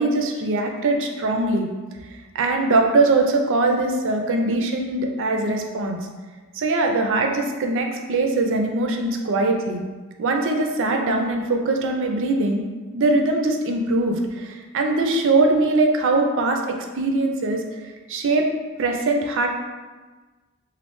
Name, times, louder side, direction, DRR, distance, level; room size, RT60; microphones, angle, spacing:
voice 1, 0.0-1.7 2.3-6.0 6.5-9.8 10.2-12.6 12.9-17.8 18.1-18.5 18.8-19.5, right 2 dB, 55° right, 3 dB, 0.4 m, -21 dB
3.1 x 2.4 x 3.0 m, 1.3 s
head